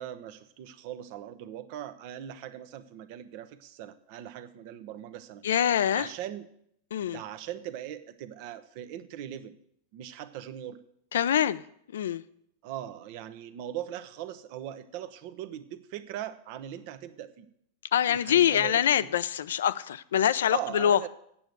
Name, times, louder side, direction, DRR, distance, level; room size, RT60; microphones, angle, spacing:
voice 1, 0.0-5.4 5.9-6.5 7.1-9.6 9.9-10.8 12.6-17.5 18.1-19.1 20.5-21.1, right 11 dB, 55° right, 0.8 m, -40 dB
voice 2, 5.4-6.1 6.9-7.2 11.1-11.6 11.9-12.2 17.9-21.1, left 9 dB, 80° left, 0.4 m, -25 dB
8.5 x 6.9 x 7.9 m
hypercardioid pair, 105°, 0 cm